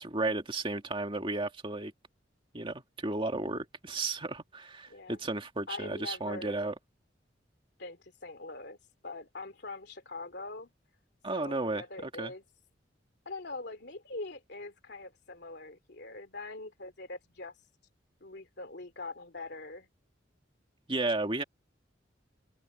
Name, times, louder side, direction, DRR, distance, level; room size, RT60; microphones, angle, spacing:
voice 1, 0.0-1.9 2.5-6.7 11.2-12.3 20.9-21.4, right 2 dB, 30° right, 2.2 m, -33 dB
voice 2, 4.9-5.3 5.7-6.6 7.8-8.8 9.0-10.7 11.3-12.4 13.2-17.5 18.2-19.9, left 3 dB, 65° left, 3.0 m, -43 dB
head